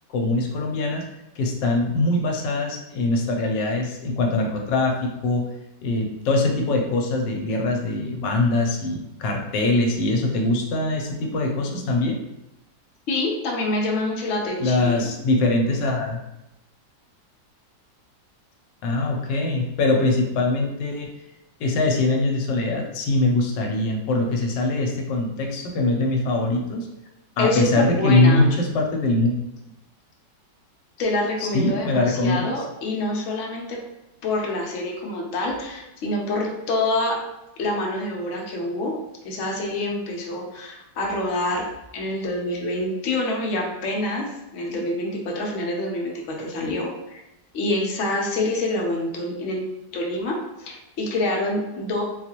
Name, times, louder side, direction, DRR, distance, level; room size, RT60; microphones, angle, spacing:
voice 1, 0.1-1.0 1.4-5.4 5.8-12.2 14.6-16.2 18.8-21.1 21.6-26.9 27.4-29.4 31.4-32.5, left 2 dB, 90° left, 1 dB, 1.3 m, -22 dB
voice 2, 13.1-15.1 27.4-28.5 31.0-33.8 34.2-37.2 37.6-39.0 39.2-41.7 41.9-47.2 47.5-52.0, left 2 dB, 60° left, -1 dB, 0.8 m, -26 dB
3.9 x 2.3 x 2.9 m, 0.91 s
omnidirectional pair, 1.9 m